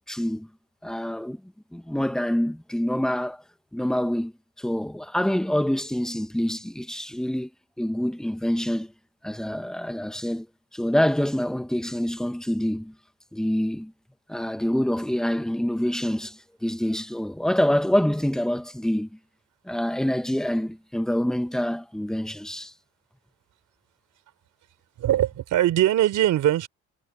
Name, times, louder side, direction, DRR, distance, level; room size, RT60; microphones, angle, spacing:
voice 1, 0.1-0.5 0.8-3.4 3.7-4.3 4.6-7.5 7.8-8.9 9.2-10.5 10.7-12.9 13.3-13.9 14.3-19.2 19.6-22.7, equal, ahead, 1.1 m, -26 dB
voice 2, 25.0-26.7, right 13 dB, 80° right, 3.9 m, -21 dB
cardioid pair, 90°, 30 cm